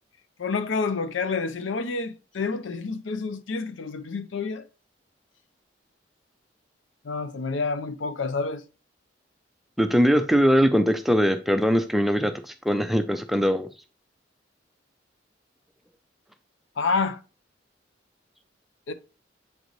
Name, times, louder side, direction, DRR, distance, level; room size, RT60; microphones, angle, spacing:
voice 1, 0.4-4.6 7.0-8.6 16.8-17.2 18.9-19.0, left 4 dB, 85° left, 0.5 m, -28 dB
voice 2, 9.8-13.7, equal, ahead, 0.4 m, -21 dB
7.9 x 3.9 x 3.0 m
head